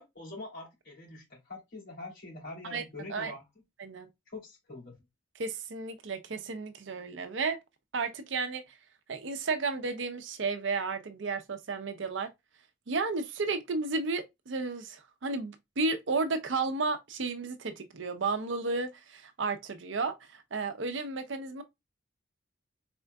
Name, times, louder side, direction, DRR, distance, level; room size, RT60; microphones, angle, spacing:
voice 1, 0.0-3.4 4.3-5.0, left 2 dB, 60° left, 3.0 m, -44 dB
voice 2, 5.4-7.6 7.9-8.6 9.1-12.3 12.9-21.6, right 4 dB, 65° right, 0.6 m, -33 dB
4.3 x 3.7 x 2.2 m
head